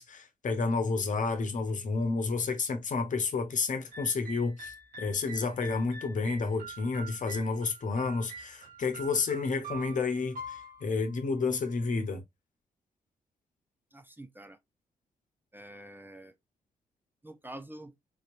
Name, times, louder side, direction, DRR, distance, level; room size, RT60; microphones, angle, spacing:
voice 1, 0.0-12.2, left 4 dB, 60° left, 1.1 m, -30 dB
sound 1, 3.9-11.9, right 2 dB, 70° right, 1.5 m, -46 dB
voice 2, 13.9-14.6 15.5-16.3 17.2-17.9, right 1 dB, 15° right, 0.8 m, -46 dB
4.0 x 3.0 x 2.6 m
supercardioid pair, 50°, 15 cm